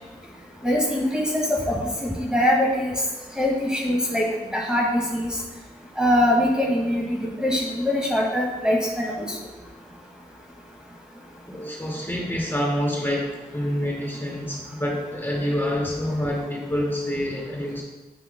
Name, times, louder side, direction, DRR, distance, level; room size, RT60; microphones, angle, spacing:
voice 1, 0.6-2.9 3.4-5.4 6.0-9.3, left 1 dB, 5° right, -4 dB, 2.1 m, -23 dB
voice 2, 11.5-17.8, equal, 15° left, -3 dB, 2.1 m, -27 dB
9.9 x 5.8 x 2.2 m, 1.1 s
cardioid pair, 40°, 16 cm